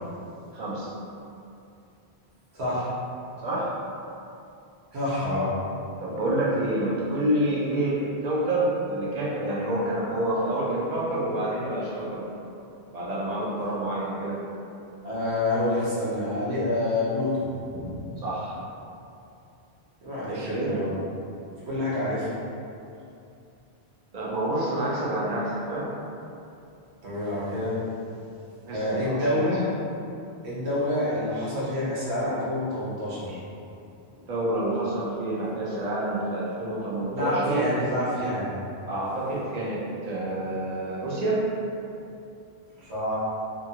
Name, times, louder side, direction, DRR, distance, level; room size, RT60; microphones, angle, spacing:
voice 1, 0.5-0.9 3.4-3.7 6.0-12.3 12.9-14.4 18.2-18.6 20.3-20.8 24.1-25.9 28.6-29.4 34.2-37.7 38.8-41.5, right 1 dB, 50° right, -5 dB, 0.6 m, -28 dB
voice 2, 2.5-2.9 4.9-5.5 15.0-18.2 20.0-20.9 21.6-22.3 27.0-27.8 28.7-29.6 30.4-33.4 37.1-38.6 42.8-43.2, left 1 dB, 90° right, -9 dB, 1.2 m, -27 dB
2.9 x 2.4 x 2.8 m, 2.6 s
omnidirectional pair, 1.1 m